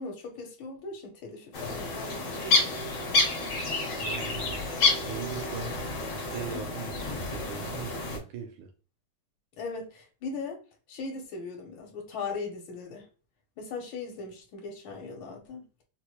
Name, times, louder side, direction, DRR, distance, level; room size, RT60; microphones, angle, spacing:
voice 1, 0.0-3.3 6.5-6.6 9.6-10.6 10.9-13.1 13.6-15.6, left 4 dB, 75° left, 1.5 m, -39 dB
sound 1, 1.5-8.2, left 3 dB, 55° left, 1.0 m, -29 dB
voice 2, 4.0-4.6 5.1-8.7, right 8 dB, 75° right, 1.4 m, -40 dB
4.4 x 2.0 x 2.8 m
omnidirectional pair, 2.3 m